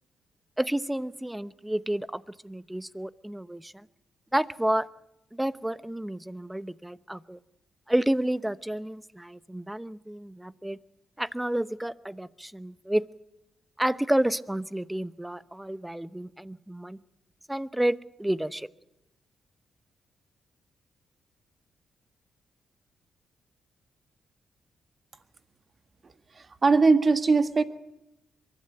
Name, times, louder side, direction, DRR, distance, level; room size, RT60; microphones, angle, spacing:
voice 1, 0.6-3.8 4.3-4.9 5.3-7.4 7.9-10.8 11.2-13.0 13.8-17.0 17.5-18.7, right 1 dB, 10° right, 16 dB, 0.8 m, -30 dB
voice 2, 26.3-27.6, right 4 dB, 40° right, 10 dB, 1.6 m, -21 dB
23.0 x 13.0 x 9.3 m, 0.90 s
supercardioid pair, 60°, 0 cm